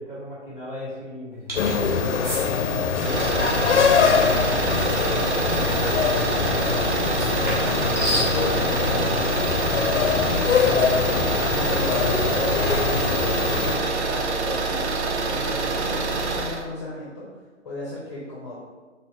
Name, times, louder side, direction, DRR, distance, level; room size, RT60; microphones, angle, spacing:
voice 1, 0.0-2.3 2.7-6.1, left 1 dB, 10° right, -6 dB, 0.8 m, -36 dB
sound 1, 1.5-1.8 2.2-2.4 5.0-5.2 7.1-8.3, equal, 30° right, 1.0 m, -29 dB
sound 2, 1.6-13.8, left 6 dB, 70° left, 0.5 m, -23 dB
sound 3, 3.0-16.6, right 3 dB, 65° right, 0.6 m, -26 dB
voice 2, 8.1-10.3 10.6-14.9 15.2-17.3 17.6-18.6, left 1 dB, 25° left, -6 dB, 0.6 m, -36 dB
4.0 x 2.9 x 3.0 m, 1.4 s
figure-of-eight pair, 145°, 37 cm